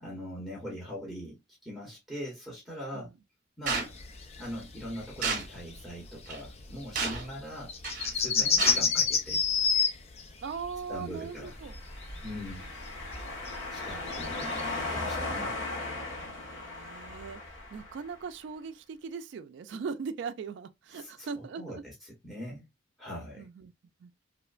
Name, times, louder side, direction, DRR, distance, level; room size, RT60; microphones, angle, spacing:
voice 1, 0.0-3.1 3.6-3.9 4.4-7.7 8.1-9.4 10.9-11.5 12.2-12.6 13.7-15.6 20.9-21.3 21.5-22.7 23.0-23.5, equal, ahead, 0.9 m, -41 dB
sound 1, 3.7-10.3 10.6-11.0 11.4-12.7 12.9-14.6, left 5 dB, 30° left, 0.4 m, -29 dB
sound 2, 3.7-3.9 5.2-5.5 6.3-6.4 7.0-7.3 7.8-8.1 8.6-8.8, right 4 dB, 40° right, 0.7 m, -31 dB
voice 2, 8.3-8.8 10.4-11.8 12.3-12.7 16.2-17.4 17.7-21.8 23.2-23.7 24.0-24.1, right 5 dB, 65° right, 0.3 m, -40 dB
sound 3, 11.4-18.1, left 2 dB, 80° left, 1.2 m, -37 dB
3.0 x 2.1 x 2.3 m
head